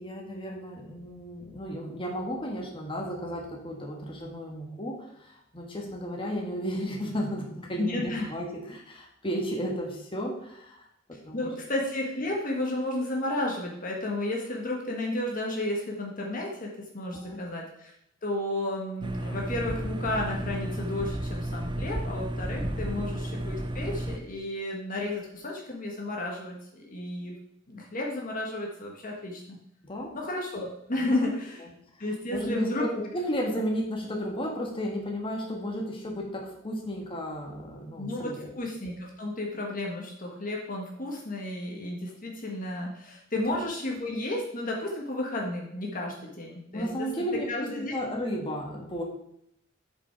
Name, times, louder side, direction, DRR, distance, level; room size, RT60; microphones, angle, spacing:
voice 1, 0.0-11.5 17.1-17.4 22.7-23.0 29.8-30.1 31.0-31.1 31.6-31.7 32.3-38.5 43.5-43.6 46.7-49.0, equal, 25° left, 0 dB, 1.5 m, -34 dB
voice 2, 7.8-8.3 11.3-17.9 18.2-27.3 27.7-29.6 30.1-31.7 32.0-32.9 38.0-47.9, left 1 dB, 45° left, -1 dB, 1.4 m, -32 dB
sound 1, 19.0-24.2, right 1 dB, 25° right, 0.6 m, -32 dB
8.0 x 5.3 x 4.5 m, 0.75 s
head